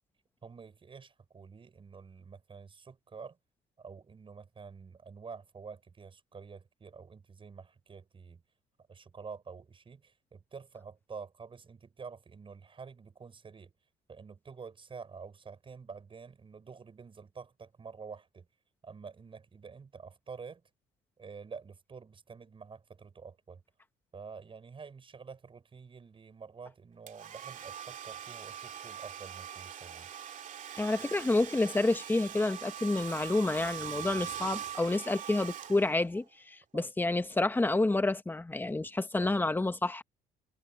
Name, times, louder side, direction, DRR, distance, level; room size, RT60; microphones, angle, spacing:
voice 1, 0.4-3.4 3.8-8.4 8.9-13.7 14.1-18.5 18.8-20.6 21.2-23.6 24.1-30.1 36.7-36.9 39.2-39.3, right 5 dB, 30° right, 7.3 m, -48 dB
Domestic sounds home sounds, 27.1-36.2, right 9 dB, 50° right, 2.4 m, -42 dB
voice 2, 30.8-40.0, left 2 dB, 10° left, 1.6 m, -29 dB
cardioid pair, 110°, 17 cm